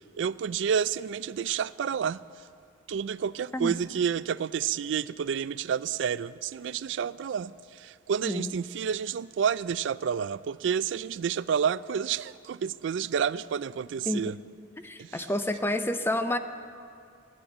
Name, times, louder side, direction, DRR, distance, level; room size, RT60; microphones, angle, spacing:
voice 1, 0.2-2.2 2.9-14.4 15.0-15.3, right 7 dB, 75° right, 0.3 m, -29 dB
voice 2, 8.2-8.5 14.1-14.2 14.8-16.4, left 1 dB, 10° left, 0.6 m, -29 dB
12.5 x 10.0 x 9.2 m
head